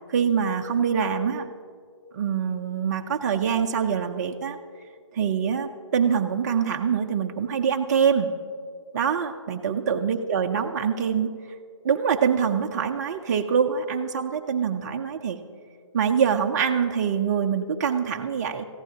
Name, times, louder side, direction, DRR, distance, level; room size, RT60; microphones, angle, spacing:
voice 1, 0.1-1.5 2.1-4.6 5.1-8.3 8.9-11.3 11.8-15.4 15.9-18.7, right 7 dB, 35° right, 3 dB, 0.6 m, -24 dB
19.5 x 14.5 x 2.8 m, 2.2 s
hypercardioid pair, 150°, 16 cm